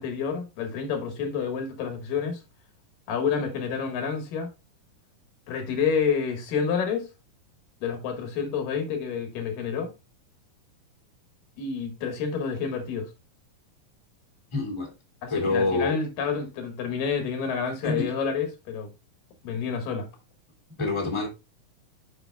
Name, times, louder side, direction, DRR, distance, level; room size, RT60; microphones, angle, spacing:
voice 1, 0.0-2.4 3.1-4.5 5.5-7.1 7.8-9.9 11.6-13.1 15.2-18.9 19.4-20.1, left 6 dB, 75° left, 3.1 m, -29 dB
voice 2, 14.5-14.9 15.3-16.0 17.8-18.1 20.8-21.3, left 3 dB, 10° left, 2.1 m, -26 dB
9.0 x 6.2 x 2.2 m
omnidirectional pair, 4.0 m